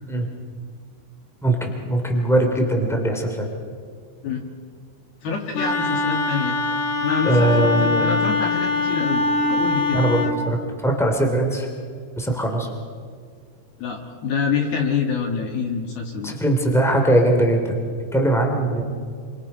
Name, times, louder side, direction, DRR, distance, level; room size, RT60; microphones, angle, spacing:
voice 1, 1.4-3.4 7.2-8.1 9.9-11.7 12.1-12.7 16.2-17.8 18.1-18.8, right 1 dB, 5° left, 2 dB, 0.3 m, -20 dB
voice 2, 5.2-6.6 7.0-10.0 13.8-16.3, left 5 dB, 60° left, 0 dB, 3.0 m, -26 dB
Wind instrument woodwind instrument, 5.5-10.4, left 3 dB, 75° left, 4.6 m, -23 dB
29.0 x 26.0 x 5.6 m, 2.2 s
omnidirectional pair, 5.9 m